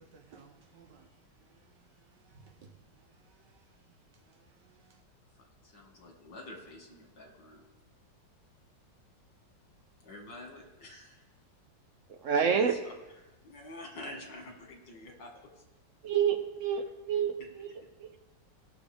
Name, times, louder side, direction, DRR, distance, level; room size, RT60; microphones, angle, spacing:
voice 1, 0.0-5.0, right 5 dB, 70° right, 4 dB, 1.5 m, -60 dB
voice 2, 5.6-7.7 10.0-11.2 12.4-12.9 13.2-15.3, left 1 dB, 70° left, 1 dB, 2.5 m, -47 dB
voice 3, 12.1-12.7 16.0-18.2, right 7 dB, 55° right, 6 dB, 1.0 m, -29 dB
18.5 x 6.2 x 3.5 m, 1.1 s
omnidirectional pair, 2.0 m